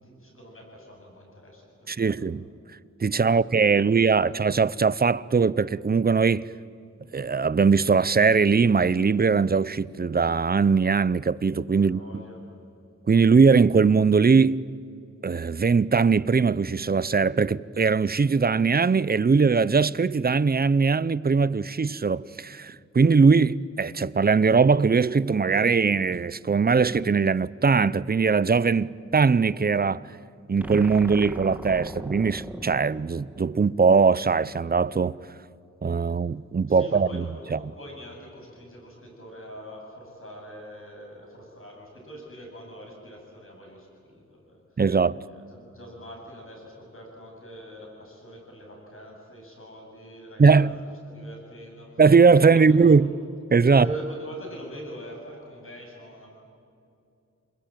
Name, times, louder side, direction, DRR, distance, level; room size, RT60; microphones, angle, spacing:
voice 1, 0.0-2.3 3.1-4.3 11.7-12.4 36.0-36.1 36.7-44.6 45.3-51.9 52.3-53.0 53.7-56.3, right 1 dB, 45° left, 7.9 m, -43 dB
voice 2, 1.9-2.4 3.0-6.5 7.1-12.2 13.1-14.6 15.2-30.1 30.5-35.2 35.8-37.2 37.5-37.6 44.8-45.2 50.4-50.7 52.0-53.1 53.5-53.9, right 5 dB, 30° right, 0.6 m, -20 dB
sound 1, 30.6-33.9, right 1 dB, 5° right, 1.5 m, -40 dB
28.0 x 21.0 x 9.1 m
wide cardioid pair, 105°, 30 cm